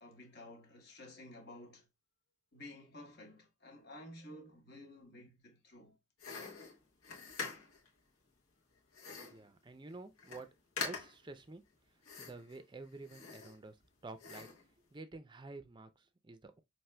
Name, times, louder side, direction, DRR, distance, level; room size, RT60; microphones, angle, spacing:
voice 1, 0.0-1.9 2.5-6.0, left 1 dB, 50° left, 1.2 m, -53 dB
sound 1, 6.2-7.9 8.9-9.5 9.9-10.0 10.2-10.5 10.8-11.3 12.0-12.6 13.0-13.8 14.2-14.7, left 5 dB, 90° left, 1.4 m, -44 dB
voice 2, 9.2-10.5 10.8-11.6 11.9-13.8 14.0-14.5 14.9-16.6, right 3 dB, 20° right, 0.4 m, -50 dB
5.7 x 2.9 x 2.2 m
head